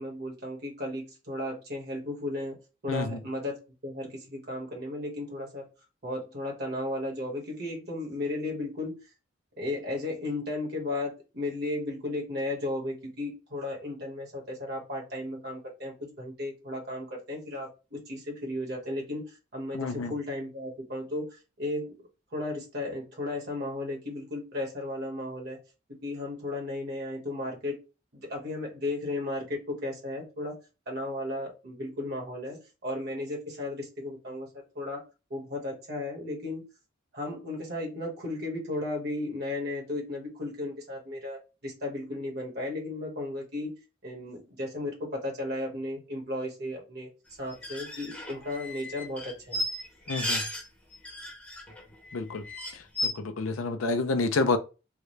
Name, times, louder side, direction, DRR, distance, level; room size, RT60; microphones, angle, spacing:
voice 1, 0.0-2.6 2.8-5.7 6.0-9.0 9.6-22.0 22.3-25.6 25.9-27.8 28.1-30.6 30.9-35.0 35.3-36.6 37.1-43.7 44.0-47.1 47.4-49.6, left 1 dB, 50° right, 1.4 m, -35 dB
voice 2, 2.9-3.2 19.7-20.1 50.1-50.4 52.1-52.4 53.0-54.6, left 3 dB, 85° left, 0.5 m, -28 dB
sound 1, 47.5-50.6 50.9-51.8 52.1-52.2 52.4-53.1, left 1 dB, 5° left, 0.9 m, -34 dB
3.7 x 2.2 x 3.1 m
head